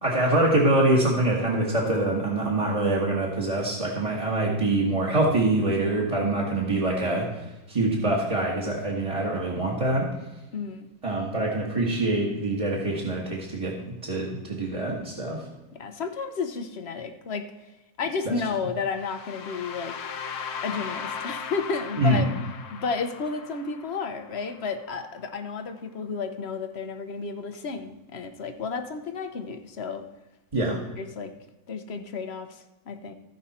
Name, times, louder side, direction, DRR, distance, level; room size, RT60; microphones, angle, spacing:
voice 1, 0.0-7.3 7.7-10.1 11.0-15.4 18.2-18.3 22.0-22.2 30.5-30.8, right 2 dB, 20° right, -3 dB, 1.5 m, -24 dB
voice 2, 10.5-10.9 15.7-17.7 18.0-20.0 20.6-22.3 22.7-30.0 31.0-31.3 31.7-33.1, left 4 dB, 50° left, 7 dB, 0.9 m, -32 dB
sound 1, 18.9-24.8, left 6 dB, 80° left, 1.4 m, -38 dB
15.5 x 5.3 x 4.2 m, 1.0 s
omnidirectional pair, 1.7 m